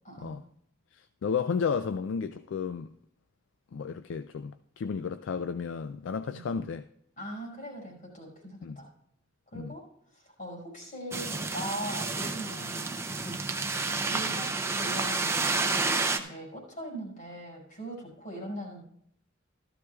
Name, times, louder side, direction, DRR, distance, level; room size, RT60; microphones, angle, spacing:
voice 1, 0.0-0.4 6.3-6.4 7.2-8.9 9.5-9.9 10.1-18.8, right 1 dB, 45° left, 5.3 m, -41 dB
voice 2, 0.9-2.9 3.7-6.9 8.6-8.8 9.5-9.8, left 6 dB, 70° left, 0.3 m, -33 dB
sound 1, 11.1-16.2, right 3 dB, 15° right, 0.5 m, -30 dB
15.0 x 13.0 x 2.3 m
head